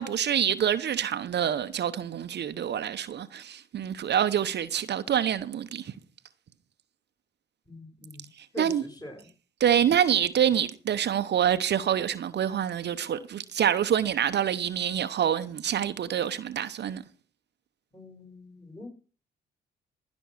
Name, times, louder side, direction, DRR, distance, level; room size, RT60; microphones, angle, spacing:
voice 1, 0.0-5.9 8.6-8.8 9.6-17.0, right 9 dB, 60° right, 0.9 m, -26 dB
voice 2, 7.7-8.3 8.5-9.3 17.9-18.9, left 1 dB, 20° left, 5.6 m, -43 dB
16.0 x 6.2 x 6.2 m
supercardioid pair, 60°, 20 cm